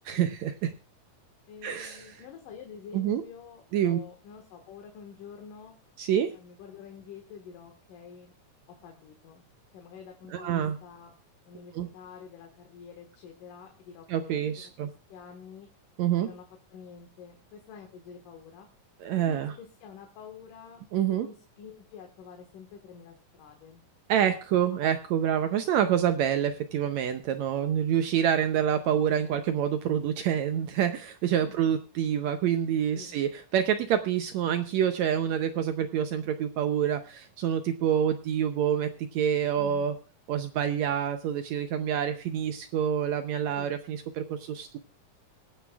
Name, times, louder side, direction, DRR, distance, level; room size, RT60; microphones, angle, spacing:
voice 1, 0.1-0.7 1.6-2.1 2.9-3.2 3.7-4.0 6.0-6.3 10.3-10.8 11.7-11.9 14.1-14.9 16.0-16.3 19.0-19.5 20.9-21.3 24.1-40.0 40.3-44.8, right 9 dB, 75° right, 8 dB, 1.8 m, -27 dB
voice 2, 1.5-5.7 6.3-8.3 8.7-9.4 9.7-11.1 11.5-14.4 15.1-15.7 16.2-16.4 16.7-18.7 19.3-20.8 21.1-23.8 25.7-25.9 31.4-31.6 32.9-33.2 39.6-39.9 43.6-43.8, left 6 dB, 80° left, 3 dB, 3.1 m, -48 dB
24.0 x 9.3 x 2.3 m, 0.33 s
omnidirectional pair, 3.7 m